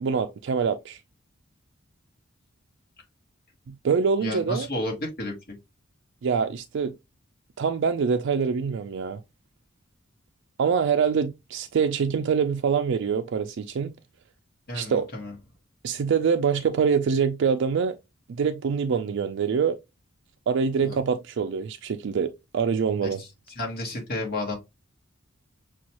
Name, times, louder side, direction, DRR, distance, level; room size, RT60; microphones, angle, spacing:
voice 1, 0.0-1.0 3.7-4.7 6.2-6.9 7.6-9.2 10.6-13.9 14.7-15.1 15.8-18.0 18.3-19.8 20.5-23.2, right 6 dB, 65° right, 0.4 m, -25 dB
voice 2, 4.2-5.6 14.7-15.3 20.8-21.0 23.0-23.3 23.5-24.5, left 2 dB, 50° left, 1.5 m, -32 dB
6.1 x 2.3 x 2.9 m
head